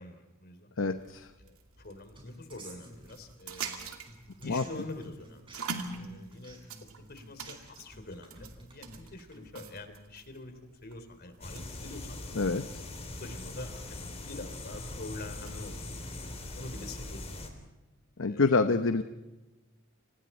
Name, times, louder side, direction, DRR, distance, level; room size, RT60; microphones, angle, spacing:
voice 1, 0.0-0.7 1.4-4.0 4.4-6.6 7.0-10.5 10.8-12.2 12.6-12.8 13.2-16.2 16.5-17.5 18.2-19.0, left 2 dB, 50° left, 8 dB, 3.4 m, -46 dB
voice 2, 0.8-1.3 4.4-4.6 12.4-12.7 18.2-19.0, left 3 dB, 65° left, 9 dB, 0.9 m, -26 dB
sound 1, 0.9-15.7, right 5 dB, 85° right, 2.6 m, -46 dB
sound 2, 2.2-3.8 4.0-9.8, right 2 dB, 25° right, 6.3 m, -51 dB
sound 3, 11.4-17.5, left 2 dB, 30° left, 3.4 m, -41 dB
30.0 x 26.0 x 4.4 m, 1.1 s
head